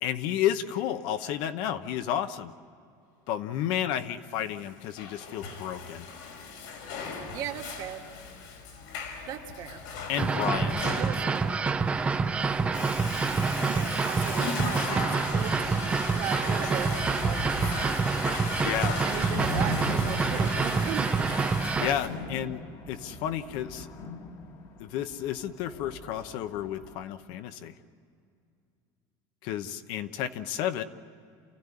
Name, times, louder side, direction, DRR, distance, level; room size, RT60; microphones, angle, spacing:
voice 1, 0.0-2.5 3.3-6.1 10.1-10.8 18.6-19.0 21.8-22.6 22.9-23.9 24.8-27.7 29.4-30.8, left 10 dB, 55° left, 10 dB, 1.0 m, -31 dB
Water / Toilet flush, 4.6-22.1, left 5 dB, 85° left, 4.8 m, -38 dB
voice 2, 7.1-8.0 9.3-9.8 10.9-11.7 13.6-17.7 19.0-21.1, right 10 dB, 45° right, 3 dB, 1.8 m, -37 dB
sound 1, 10.2-21.9, right 4 dB, 10° right, 0.6 m, -27 dB
sound 2, 15.4-27.0, equal, 35° left, 1.7 m, -39 dB
28.5 x 15.5 x 9.7 m, 2.4 s
cardioid pair, 180°, 9 cm